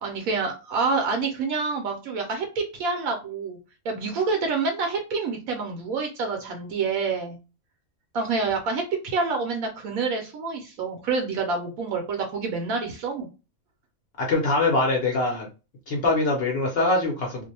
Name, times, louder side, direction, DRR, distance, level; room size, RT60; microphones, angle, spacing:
voice 1, 0.0-3.6 3.8-7.4 8.1-13.3, right 4 dB, 75° right, 3 dB, 1.0 m, -27 dB
voice 2, 14.2-15.5 15.9-17.4, left 2 dB, 55° left, 0 dB, 0.7 m, -23 dB
2.5 x 2.1 x 2.7 m, 0.30 s
omnidirectional pair, 1.5 m